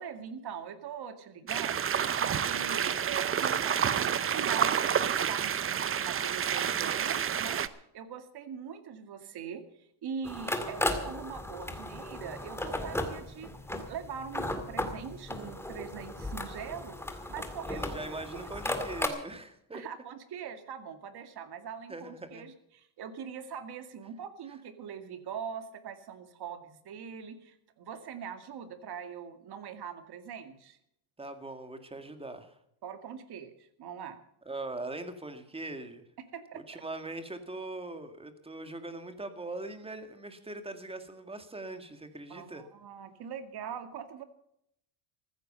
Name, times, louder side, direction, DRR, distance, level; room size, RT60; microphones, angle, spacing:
voice 1, 0.0-1.8 2.2-7.6 7.9-9.6 10.0-17.0 17.3-17.9 18.3-18.5 19.7-30.8 32.8-34.2 36.3-36.8 42.3-44.2, right 7 dB, 50° right, 9 dB, 2.3 m, -42 dB
sound 1, 1.5-7.7, right 8 dB, 25° right, 0.7 m, -29 dB
sound 2, 10.2-19.1, left 1 dB, 5° left, 2.1 m, -36 dB
voice 2, 17.7-19.8 21.9-22.4 31.2-32.6 34.5-36.0 36.5-42.6, right 2 dB, 10° right, 8 dB, 2.0 m, -41 dB
15.0 x 14.5 x 5.5 m, 0.74 s
cardioid pair, 130°, 50 cm